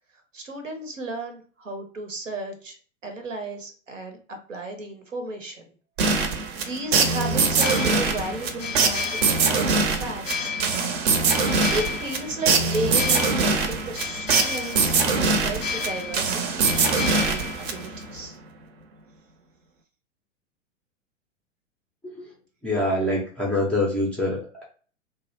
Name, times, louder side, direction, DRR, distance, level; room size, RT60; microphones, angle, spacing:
voice 1, 0.3-2.8 3.0-5.7 6.5-10.6 11.7-18.4, right 2 dB, 85° right, 5 dB, 0.8 m, -34 dB
sound 1, 6.0-18.1, right 4 dB, 55° right, 0.6 m, -23 dB
sound 2, 7.5-18.3, left 6 dB, 85° left, 0.5 m, -34 dB
voice 2, 22.6-24.6, left 1 dB, 5° left, -5 dB, 0.3 m, -25 dB
2.3 x 2.0 x 2.8 m, 0.41 s
figure-of-eight pair, 95°, 37 cm